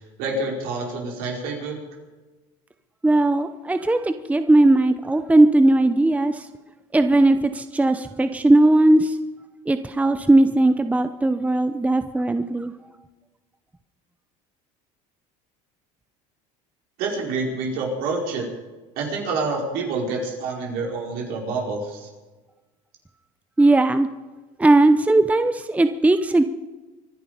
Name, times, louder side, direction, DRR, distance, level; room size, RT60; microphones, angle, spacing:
voice 1, 0.2-1.7 17.0-18.5 19.0-22.1, right 3 dB, 70° right, 0 dB, 5.2 m, -27 dB
voice 2, 3.0-6.5 6.9-9.2 9.7-12.7 23.6-24.1 24.6-26.4, right 2 dB, 10° right, 10 dB, 0.8 m, -18 dB
24.5 x 11.0 x 5.1 m, 1.2 s
supercardioid pair, 95°, 16 cm